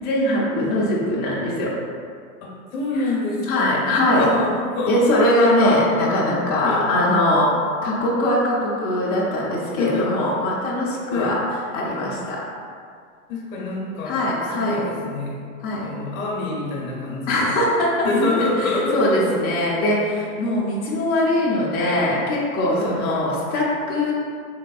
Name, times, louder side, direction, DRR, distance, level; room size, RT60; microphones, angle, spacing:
voice 1, 0.0-1.7 3.0-3.1 3.5-4.3 4.9-7.5 7.8-11.4 11.7-12.4 14.0-14.8 15.6-15.9 17.3-24.1, left 1 dB, 25° left, -6 dB, 0.6 m, -21 dB
voice 2, 2.4-3.8 4.1-5.1 6.6-6.8 9.8-10.1 11.1-11.3 13.3-14.2 14.6-15.4 15.8-17.5 18.0-19.4 22.7-23.0, left 3 dB, 70° left, -3 dB, 0.9 m, -26 dB
3.5 x 3.3 x 2.3 m, 2.2 s
hypercardioid pair, 120°, 42 cm